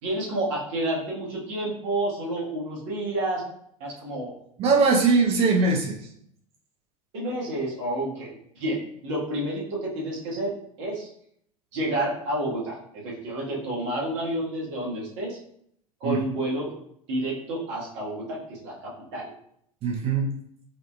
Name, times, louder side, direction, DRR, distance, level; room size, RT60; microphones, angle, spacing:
voice 1, 0.0-3.4 3.8-4.3 7.1-11.1 11.7-15.4 16.0-16.8 17.1-19.3, right 1 dB, 55° right, -4 dB, 1.4 m, -30 dB
voice 2, 4.6-6.1 16.0-16.2 19.8-20.3, right 4 dB, 35° right, 1 dB, 0.6 m, -21 dB
4.9 x 2.7 x 2.2 m, 0.71 s
figure-of-eight pair, 80°, 18 cm